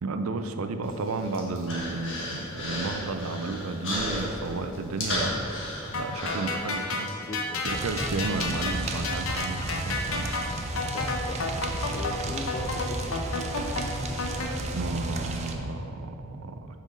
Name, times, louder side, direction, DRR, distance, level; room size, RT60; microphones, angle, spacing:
voice 1, 0.0-5.4 5.9-7.1 7.6-10.3 14.7-16.8, right 3 dB, 85° right, 8 dB, 0.5 m, -32 dB
Human voice, 0.8-7.1, left 1 dB, 60° left, 1.6 m, -34 dB
sound 1, 5.9-14.5, left 3 dB, 75° left, 0.8 m, -31 dB
voice 2, 7.2-7.9 10.9-13.2, left 2 dB, 30° left, 2 dB, 0.3 m, -39 dB
sound 2, 7.7-15.5, right 2 dB, 30° right, 0.5 m, -33 dB
6.3 x 5.3 x 5.2 m, 2.6 s
head